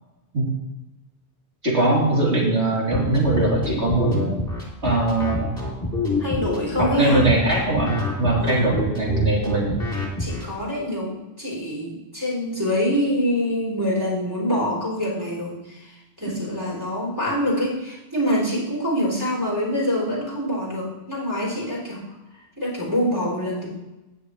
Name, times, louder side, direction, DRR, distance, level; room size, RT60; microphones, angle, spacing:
voice 1, 1.6-4.2 4.8-5.5 7.0-9.7, right 2 dB, 85° right, -5 dB, 3.8 m, -21 dB
sound 1, 2.9-10.4, left 2 dB, 15° left, 3.2 m, -27 dB
voice 2, 6.2-7.3 8.4-8.7 10.2-22.0 22.6-23.7, equal, 20° right, -4 dB, 3.9 m, -25 dB
18.5 x 6.8 x 3.2 m, 1.0 s
omnidirectional pair, 1.1 m